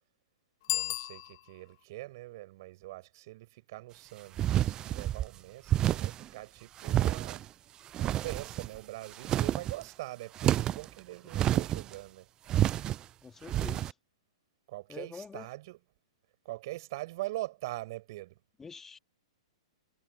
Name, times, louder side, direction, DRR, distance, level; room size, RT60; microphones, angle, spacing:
Bicycle bell, 0.6-1.8, left 19 dB, 50° left, 0.8 m, -35 dB
voice 1, 0.7-7.4 8.0-12.3 14.7-15.8 16.4-18.4, right 18 dB, 50° right, 6.1 m, -43 dB
sound 1, 4.4-5.3 5.7-6.3 6.8-7.5 7.9-8.8 9.1-9.8 10.4-10.9 11.3-12.0 12.5-13.0 13.5-13.9, right 12 dB, 25° right, 0.5 m, -29 dB
voice 2, 13.2-13.9 14.9-15.5 18.6-19.0, left 5 dB, 10° left, 2.4 m, -45 dB
figure-of-eight pair, 110°, 3 cm